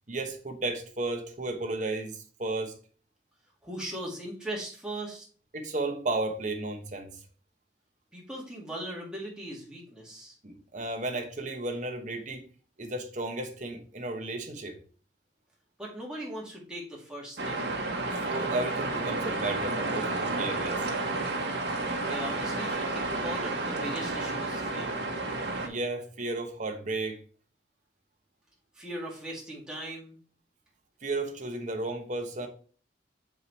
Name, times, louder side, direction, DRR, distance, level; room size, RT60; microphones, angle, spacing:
voice 1, 0.1-2.7 5.5-7.2 10.4-12.4 12.8-14.8 18.2-20.8 25.6-27.2 31.0-32.5, right 2 dB, 40° right, 1.1 m, -33 dB
voice 2, 3.6-5.3 8.1-10.3 15.8-17.6 22.0-25.0 28.8-30.2, right 1 dB, 5° right, 2.0 m, -39 dB
sound 1, 17.4-25.7, right 2 dB, 60° right, 1.3 m, -31 dB
6.1 x 4.8 x 4.1 m
head